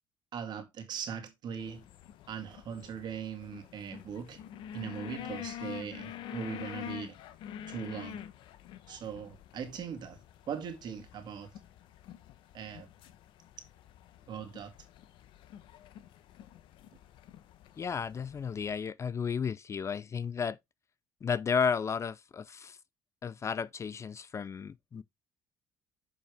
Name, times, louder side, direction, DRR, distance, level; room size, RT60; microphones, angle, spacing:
voice 1, 0.3-1.8 2.3-4.4 4.7-7.2 7.7-8.2 8.9-10.2 10.5-11.5 12.5-12.9 14.3-14.7, right 7 dB, 55° right, 2.0 m, -40 dB
sound 1, 1.6-18.7, left 11 dB, 70° left, 0.9 m, -47 dB
voice 2, 17.8-20.6 21.2-22.8 23.2-25.0, left 6 dB, 35° left, 0.4 m, -33 dB
6.8 x 5.5 x 3.4 m
supercardioid pair, 85°, 9 cm